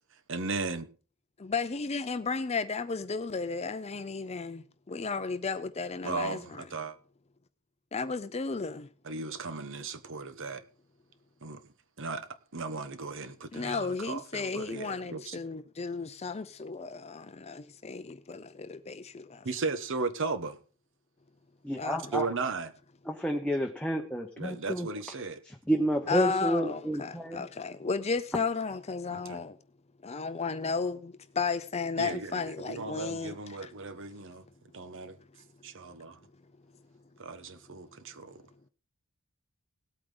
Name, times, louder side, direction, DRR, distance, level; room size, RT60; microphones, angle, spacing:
voice 1, 0.3-0.9 6.0-7.0 9.0-10.6 11.4-11.6 12.0-15.4 19.4-20.6 22.1-22.7 24.4-25.4 29.1-29.4 32.0-34.4 34.7-35.2 35.6-36.2 37.2-38.4, right 4 dB, 60° right, 1.1 m, -36 dB
voice 2, 1.4-6.6 7.9-8.9 13.5-19.5 21.8-22.0 26.1-29.6 30.0-33.3 33.6-33.7, left 4 dB, 30° left, 0.6 m, -34 dB
voice 3, 21.6-22.3 23.1-24.9 25.4-27.5, equal, 5° left, 0.9 m, -30 dB
18.0 x 8.7 x 3.9 m
head